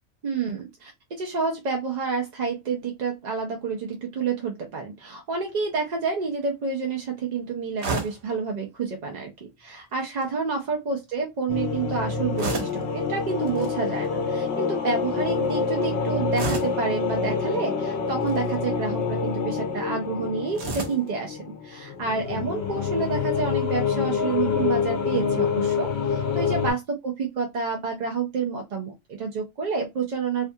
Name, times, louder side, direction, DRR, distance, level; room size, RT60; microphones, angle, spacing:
voice 1, 0.2-9.3 9.6-30.5, right 5 dB, 55° right, 2 dB, 0.5 m, -29 dB
sound 1, 7.8-8.3 9.9-10.3 12.4-12.9 13.5-13.7 16.3-16.8 18.1-18.5 20.5-21.1, right 3 dB, 80° right, 1.1 m, -31 dB
sound 2, 11.5-26.7, left 5 dB, 75° left, 0.8 m, -27 dB
2.5 x 2.2 x 2.6 m, 0.21 s
omnidirectional pair, 1.1 m